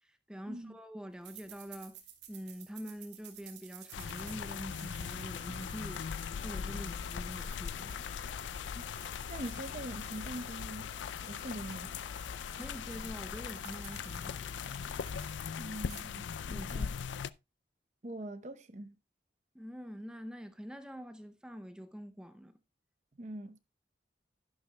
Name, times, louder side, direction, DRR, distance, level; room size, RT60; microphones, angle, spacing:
voice 1, 0.0-2.0 2.3-8.1 12.5-14.9 16.5-16.9 19.5-22.6, equal, 5° right, 0.6 m, -45 dB
sound 1, 1.2-8.4 8.7-12.3 12.8-12.9 13.1-15.5 15.8-16.2 16.5-16.9, right 10 dB, 75° right, 2.4 m, -55 dB
sound 2, 3.9-17.3, left 7 dB, 90° left, 0.4 m, -40 dB
sound 3, 5.2-15.1, left 5 dB, 30° left, 1.1 m, -54 dB
voice 2, 9.3-10.9 11.2-12.0 15.6-16.9 18.0-18.9 23.1-23.6, right 1 dB, 40° right, 0.8 m, -43 dB
11.5 x 11.0 x 2.3 m
head